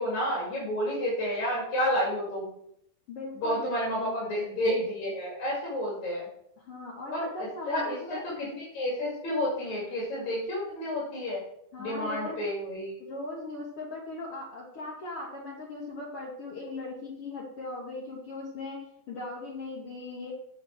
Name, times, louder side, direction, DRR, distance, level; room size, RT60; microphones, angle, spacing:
voice 1, 0.0-2.5 3.4-6.3 7.1-8.0 8.2-8.5 8.7-11.4 11.8-13.0, equal, 50° left, -5 dB, 3.3 m, -30 dB
voice 2, 3.1-4.5 6.6-8.2 11.7-12.4 13.0-18.8 19.1-20.3, left 2 dB, 85° left, -4 dB, 1.2 m, -39 dB
7.9 x 7.0 x 4.7 m, 0.73 s
omnidirectional pair, 4.7 m